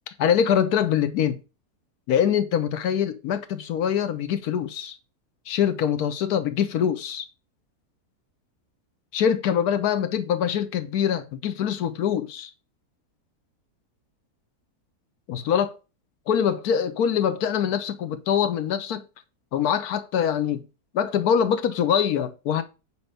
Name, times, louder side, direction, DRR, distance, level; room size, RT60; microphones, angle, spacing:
voice 1, 0.2-1.4 2.1-5.0 5.5-7.3 9.1-12.5 15.3-15.8 16.3-19.0 19.5-20.6 20.9-22.6, left 8 dB, 75° left, 1.4 m, -24 dB
9.6 x 3.2 x 6.7 m
omnidirectional pair, 1.6 m